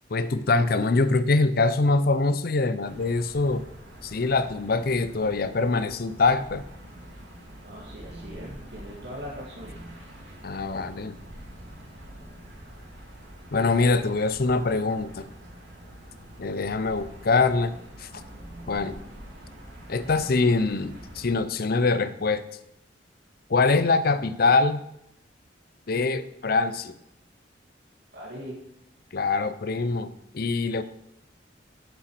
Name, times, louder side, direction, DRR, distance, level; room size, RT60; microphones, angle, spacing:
voice 1, 0.1-3.7 4.0-6.6 10.4-11.2 13.5-15.3 16.4-17.7 18.0-18.1 18.7-19.0 19.9-22.4 23.5-24.8 25.9-26.9 29.1-30.8, left 3 dB, 55° left, 13 dB, 0.6 m, -24 dB
sound 1, 2.8-21.4, right 1 dB, 80° right, 3.2 m, -45 dB
voice 2, 7.6-9.7 24.1-24.2 28.1-28.6, equal, 65° right, -3 dB, 2.0 m, -40 dB
7.9 x 6.9 x 6.1 m, 0.81 s
head